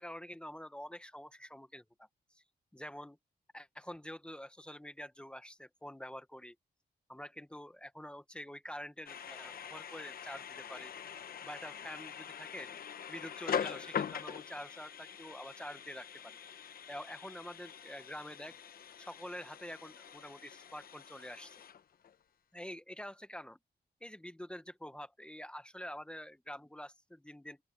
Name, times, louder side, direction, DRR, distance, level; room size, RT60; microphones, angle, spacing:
voice 1, 0.0-2.4 2.7-3.2 3.5-6.5 7.1-10.9 11.4-12.7 13.1-16.4 16.9-18.6 19.0-21.6 22.5-23.6 24.0-27.6, equal, 5° left, 1.0 m, -47 dB
sound 1, 9.1-22.2, left 8 dB, 60° left, 0.9 m, -43 dB
open air
wide cardioid pair, 165°, 17 cm